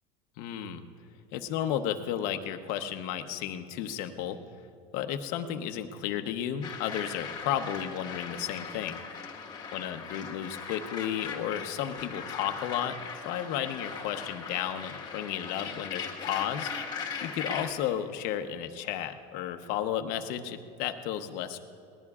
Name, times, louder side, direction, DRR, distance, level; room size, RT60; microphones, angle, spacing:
voice 1, 0.4-0.8 1.3-4.4 4.9-9.0 9.7-16.7 17.2-21.6, left 10 dB, 60° left, 8 dB, 0.9 m, -33 dB
sound 1, 6.6-17.7, left 5 dB, 25° left, 1.4 m, -39 dB
25.0 x 19.0 x 2.4 m, 2.4 s
cardioid pair, 155°, 17 cm